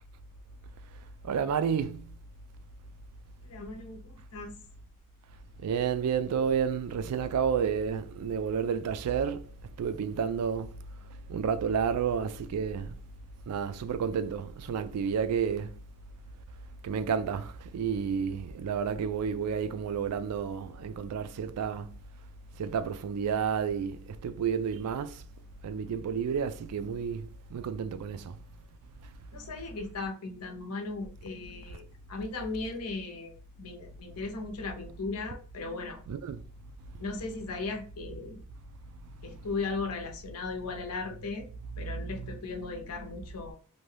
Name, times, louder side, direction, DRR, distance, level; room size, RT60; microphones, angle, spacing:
voice 1, 1.2-2.1 5.6-9.5 9.8-10.7 11.3-12.9 13.5-15.7 16.8-21.9 22.6-25.2 25.6-28.3 36.1-36.4 41.7-42.3, right 7 dB, 80° right, 0.3 m, -31 dB
voice 2, 3.4-4.5 29.3-36.0 37.0-38.4 39.2-41.4 41.8-43.5, left 3 dB, 90° left, 0.7 m, -37 dB
2.7 x 2.2 x 3.2 m
head